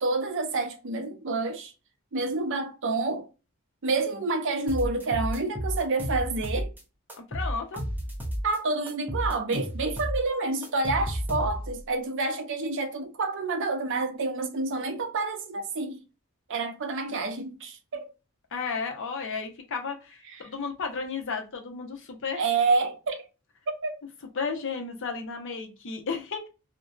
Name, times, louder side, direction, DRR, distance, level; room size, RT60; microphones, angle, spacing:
voice 1, 0.0-1.7 2.1-3.3 3.8-6.7 8.4-16.0 16.5-18.1 20.3-20.5 22.4-23.3 23.8-24.0, right 3 dB, 60° right, 0.5 m, -28 dB
sound 1, 4.7-6.8 7.1-8.6 8.9-11.8, equal, 10° right, 0.6 m, -32 dB
voice 2, 7.3-7.8 18.5-22.4 24.4-26.5, left 5 dB, 60° left, 0.7 m, -33 dB
2.5 x 2.2 x 2.3 m
head